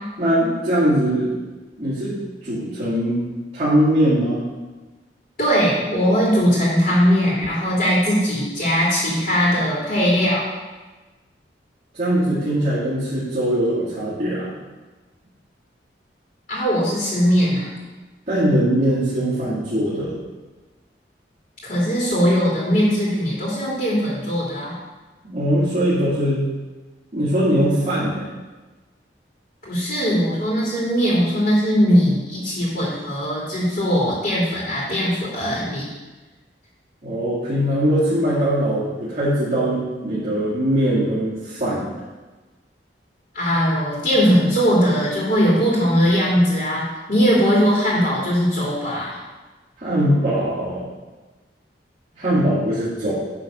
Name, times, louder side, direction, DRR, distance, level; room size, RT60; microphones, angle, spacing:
voice 1, 0.2-1.4 1.8-3.2 3.5-4.4 11.9-14.5 18.3-20.1 25.2-26.4 27.1-28.3 37.0-41.9 49.8-50.8 52.1-53.1, equal, 40° right, -12 dB, 2.2 m, -21 dB
voice 2, 5.4-10.4 16.5-17.8 21.6-24.8 29.6-35.8 43.3-49.2, equal, 55° left, -6 dB, 2.3 m, -20 dB
9.3 x 3.4 x 6.0 m, 1.2 s
head